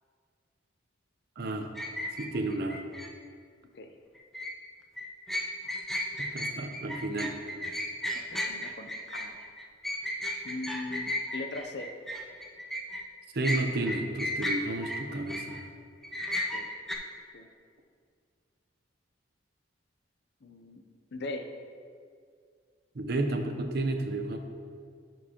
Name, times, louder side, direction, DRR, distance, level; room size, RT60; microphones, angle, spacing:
voice 1, 1.4-1.7 2.2-2.8 6.2-7.3 13.3-15.6 23.0-24.4, right 2 dB, 55° right, 5 dB, 0.6 m, -32 dB
sound 1, 1.8-3.1 4.2-4.5 5.0-13.0 13.4-15.6 16.0-17.0, left 1 dB, ahead, 0.4 m, -34 dB
voice 2, 8.1-9.4 10.4-11.9 16.5-16.7 17.3-17.5 20.4-20.8 21.1-21.5, left 2 dB, 60° left, 6 dB, 0.5 m, -40 dB
11.0 x 4.6 x 2.8 m, 2.1 s
head